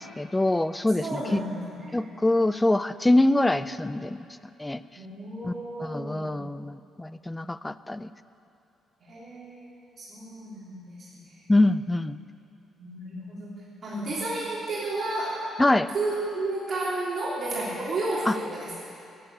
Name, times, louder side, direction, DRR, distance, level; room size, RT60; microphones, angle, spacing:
voice 1, 0.0-1.4 1.9-4.2 4.6-4.8 5.4-5.5 5.8-8.1 11.5-12.2 15.6-15.9 18.3-18.4, left 2 dB, 10° left, 15 dB, 0.4 m, -24 dB
voice 2, 1.0-2.1 4.9-6.4 9.0-9.6 10.0-11.4 12.8-13.6 13.8-15.5 15.9-18.7, right 2 dB, 50° right, -7 dB, 3.2 m, -32 dB
11.0 x 9.3 x 9.8 m, 2.7 s
cardioid pair, 90°, 0 cm